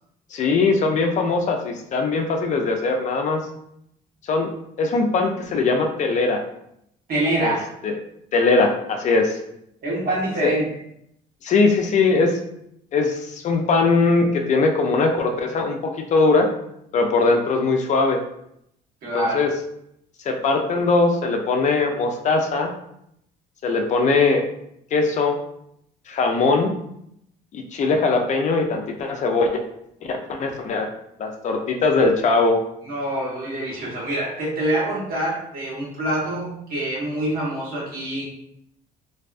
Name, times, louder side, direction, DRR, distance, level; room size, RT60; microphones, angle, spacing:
voice 1, 0.3-3.4 4.2-4.5 4.8-6.4 7.4-7.5 7.8-7.9 8.3-9.4 11.4-12.4 12.9-16.5 16.9-18.2 19.1-19.5 20.2-22.7 23.6-24.4 24.9-25.4 26.1-26.7 27.5-29.6 30.0-30.9 31.2-32.6, left 3 dB, 45° left, 3 dB, 0.4 m, -20 dB
voice 2, 7.1-7.6 9.8-10.6 19.0-19.4 32.8-38.3, right 1 dB, 60° right, -5 dB, 1.2 m, -25 dB
2.6 x 2.2 x 2.4 m, 0.76 s
cardioid pair, 110°, 17 cm